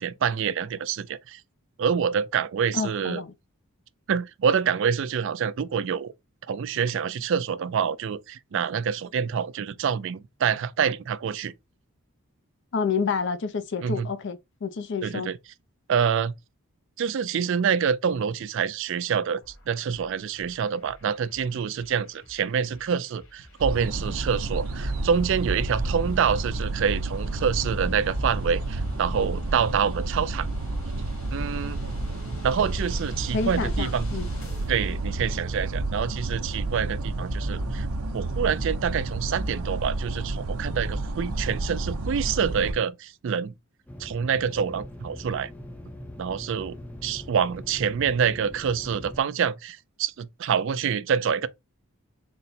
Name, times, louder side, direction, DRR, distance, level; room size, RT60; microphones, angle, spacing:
voice 1, 0.0-1.4 1.8-3.2 4.1-6.1 6.5-11.5 13.8-14.1 15.0-15.4 15.9-16.3 17.0-30.5 31.3-31.8 32.4-34.1 34.7-37.9 38.1-43.5 44.0-45.5 46.2-46.8 47.0-51.5, right 7 dB, 55° right, 0.3 m, -26 dB
voice 2, 2.7-3.3 12.7-15.3 33.3-34.3, left 5 dB, 55° left, 0.5 m, -29 dB
sound 1, 19.4-36.3, left 2 dB, 70° left, 1.4 m, -50 dB
sound 2, 23.6-42.7, right 2 dB, 85° right, 0.8 m, -30 dB
sound 3, 43.9-49.2, left 1 dB, 5° left, 0.6 m, -42 dB
4.0 x 2.1 x 4.1 m
head